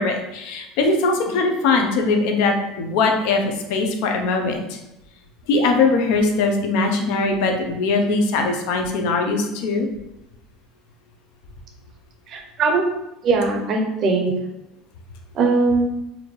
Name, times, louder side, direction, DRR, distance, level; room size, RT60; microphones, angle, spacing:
voice 1, 0.0-4.8 5.5-9.9, left 3 dB, 65° left, 4 dB, 0.6 m, -21 dB
voice 2, 12.3-12.8 13.2-14.3 15.3-15.9, right 3 dB, 35° right, 2 dB, 0.6 m, -20 dB
4.2 x 2.6 x 3.1 m, 0.89 s
cardioid pair, 175°, 0 cm